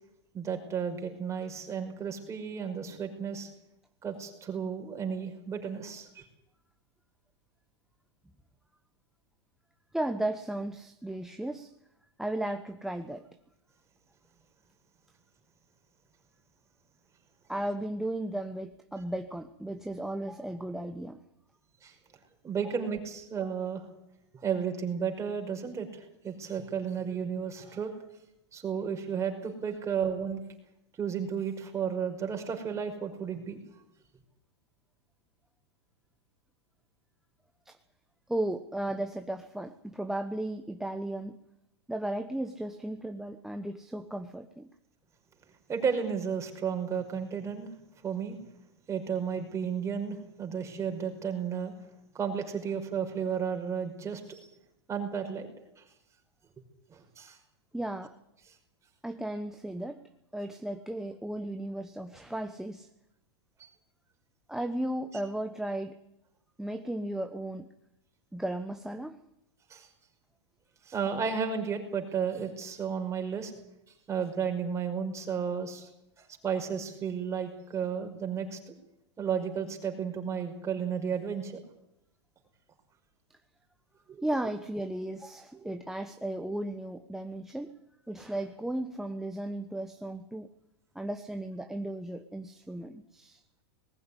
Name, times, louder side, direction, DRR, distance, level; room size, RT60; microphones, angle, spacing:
voice 1, 0.3-3.5 4.0-6.2 21.8-21.9 22.4-23.8 24.4-27.9 28.5-30.4 31.0-33.6 45.7-47.7 48.0-48.4 48.9-51.7 52.1-54.5 54.9-55.5 55.8-55.9 56.9-57.4 63.6-63.7 69.7-69.9 70.9-73.5 74.1-75.9 76.2-78.7 79.2-81.6 84.1-84.3 85.6-85.7, right 7 dB, 20° right, 4 dB, 5.4 m, -33 dB
voice 2, 9.9-11.7 12.2-13.3 17.5-21.2 37.7-37.8 38.3-41.4 41.9-44.7 57.7-58.1 59.0-62.9 64.5-66.0 66.6-67.7 68.3-69.2 84.2-90.5 90.9-93.4, right 1 dB, 5° right, 6 dB, 1.1 m, -35 dB
20.5 x 15.0 x 10.0 m, 0.86 s
hypercardioid pair, 125°, 14 cm